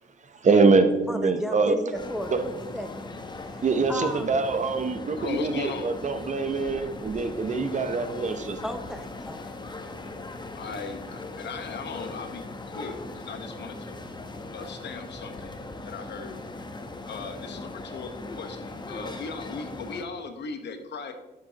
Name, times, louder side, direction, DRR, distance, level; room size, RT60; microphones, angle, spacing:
voice 1, 0.4-1.8 2.3-2.4 3.6-8.6, right 4 dB, 35° right, 9 dB, 0.8 m, -24 dB
voice 2, 1.1-3.1 3.5-3.6 3.9-4.3 8.6-9.4, equal, 5° right, 7 dB, 0.6 m, -33 dB
sound 1, 1.9-20.0, left 2 dB, 20° left, 1.0 m, -39 dB
voice 3, 5.2-5.9 10.5-14.0 14.5-16.4 17.1-21.1, left 4 dB, 60° left, 7 dB, 1.2 m, -38 dB
11.0 x 7.1 x 2.9 m, 1.1 s
cardioid pair, 90°, 20 cm